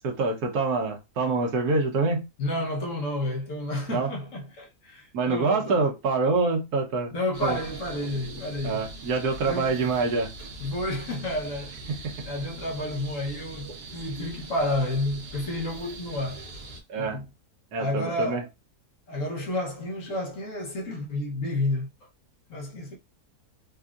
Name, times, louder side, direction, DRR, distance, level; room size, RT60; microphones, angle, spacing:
voice 1, 0.0-2.2 3.9-4.1 5.1-7.1 7.4-7.6 8.6-10.3 11.9-12.1 16.9-17.2 17.7-18.4, right 3 dB, 75° right, 1.4 m, -26 dB
voice 2, 2.4-5.9 7.1-8.8 9.4-9.8 10.6-12.0 12.2-16.4 17.0-17.3 17.8-18.5 19.1-21.9 22.5-23.0, left 1 dB, 60° left, 1.3 m, -30 dB
sound 1, 7.3-16.8, right 2 dB, 50° right, 0.9 m, -42 dB
4.1 x 2.6 x 2.4 m
omnidirectional pair, 1.7 m